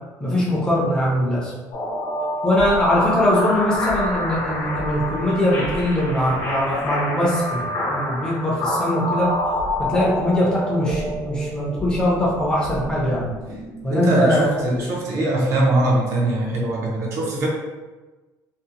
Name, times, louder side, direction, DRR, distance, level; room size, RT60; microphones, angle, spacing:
voice 1, 0.2-1.5 2.4-9.3 9.8-13.3 13.8-14.5, left 1 dB, 10° left, -6 dB, 0.5 m, -21 dB
sound 1, 1.7-14.8, left 1 dB, 55° left, 0.9 m, -27 dB
voice 2, 13.9-17.5, right 2 dB, 45° right, -3 dB, 0.5 m, -21 dB
2.5 x 2.0 x 2.8 m, 1.2 s
cardioid pair, 180°, 7 cm